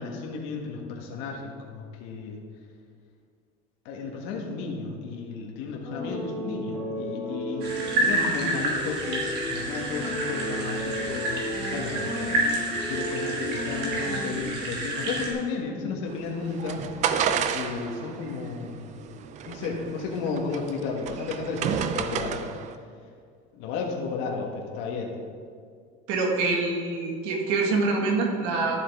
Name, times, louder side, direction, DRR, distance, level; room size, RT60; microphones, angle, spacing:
voice 1, 0.0-2.4 3.8-7.7 8.0-16.8 17.5-18.9 19.4-22.5 23.5-25.2, left 4 dB, 75° left, 0 dB, 1.5 m, -33 dB
sound 1, 5.8-14.4, equal, 5° right, 2.7 m, -34 dB
sound 2, 7.6-15.3, right 2 dB, 55° right, 2.4 m, -29 dB
sound 3, 16.1-22.7, right 7 dB, 35° right, 0.5 m, -31 dB
voice 2, 26.1-28.8, right 3 dB, 85° right, 0 dB, 1.9 m, -25 dB
12.5 x 7.3 x 3.6 m, 2.2 s
cardioid pair, 160°, 20 cm